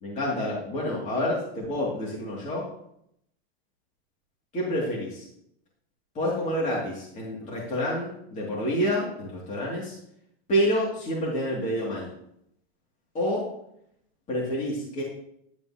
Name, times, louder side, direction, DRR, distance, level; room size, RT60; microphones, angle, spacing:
voice 1, 0.0-2.7 4.5-5.3 6.1-10.0 10.5-12.1 13.1-13.5 14.3-15.0, equal, 25° left, -5 dB, 2.5 m, -28 dB
11.0 x 8.8 x 2.9 m, 0.73 s
supercardioid pair, 160°, 31 cm